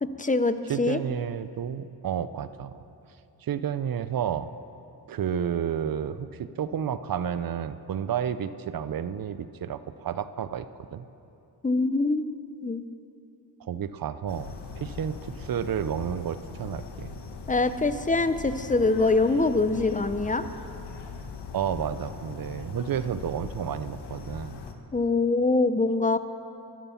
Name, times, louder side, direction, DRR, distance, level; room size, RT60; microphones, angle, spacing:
voice 1, 0.0-1.0 11.6-12.3 12.6-12.8 17.5-20.4 24.9-26.2, left 3 dB, 20° left, 11 dB, 0.7 m, -24 dB
voice 2, 0.7-2.7 3.4-4.5 5.1-11.1 13.6-14.5 14.8-17.1 21.5-24.6, right 8 dB, 55° right, 13 dB, 0.7 m, -31 dB
sound 1, 14.3-24.7, left 4 dB, 70° left, 1.3 m, -40 dB
12.0 x 11.5 x 7.1 m, 2.9 s
cardioid pair, 65°, 42 cm